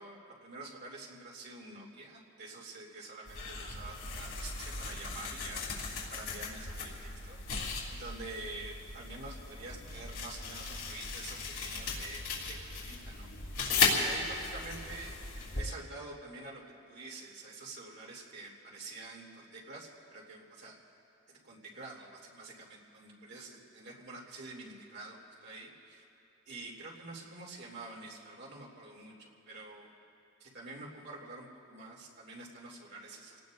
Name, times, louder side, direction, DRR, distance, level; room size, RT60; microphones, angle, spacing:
voice 1, 0.0-15.2 15.5-20.7 21.3-26.0 26.5-29.9 30.4-33.4, right 2 dB, 55° right, -3 dB, 2.8 m, -47 dB
sound 1, 3.3-15.6, left 4 dB, 80° left, 3.3 m, -36 dB
28.5 x 18.5 x 2.6 m, 2.9 s
head